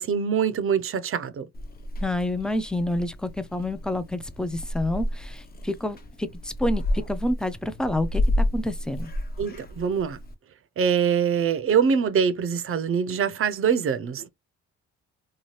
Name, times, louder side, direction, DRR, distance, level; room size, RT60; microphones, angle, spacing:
voice 1, 0.0-1.4 9.4-10.2 10.8-14.3, right 7 dB, 45° right, 0.5 m, -24 dB
Purr / Meow, 1.5-10.3, left 1 dB, 30° left, 0.7 m, -31 dB
voice 2, 2.0-9.1, left 1 dB, 5° left, 0.4 m, -28 dB
2.8 x 2.2 x 3.0 m
cardioid pair, 90°, 30 cm